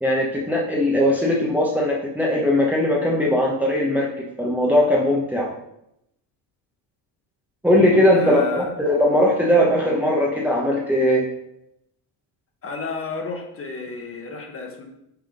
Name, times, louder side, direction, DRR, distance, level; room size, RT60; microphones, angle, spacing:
voice 1, 0.0-5.5 7.6-11.3, left 1 dB, 5° right, -3 dB, 0.9 m, -19 dB
voice 2, 8.1-8.7 12.6-14.8, left 4 dB, 30° left, 2 dB, 1.3 m, -32 dB
5.9 x 3.6 x 5.1 m, 0.81 s
cardioid pair, 135°, 43 cm